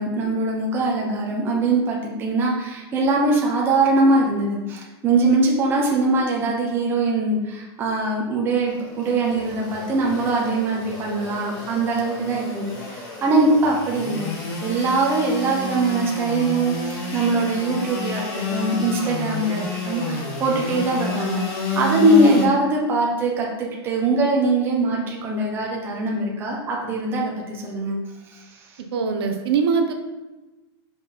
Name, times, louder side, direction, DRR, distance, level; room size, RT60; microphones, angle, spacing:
voice 1, 0.0-14.3 14.6-21.4 21.7-28.0 28.3-28.8, right 2 dB, 15° right, -2 dB, 0.8 m, -22 dB
Engine / Sawing, 8.7-22.5, left 2 dB, 40° left, 1.7 m, -30 dB
voice 2, 28.9-29.9, right 5 dB, 60° right, 5 dB, 0.8 m, -21 dB
5.4 x 4.7 x 4.2 m, 1.1 s
supercardioid pair, 175°, 14 cm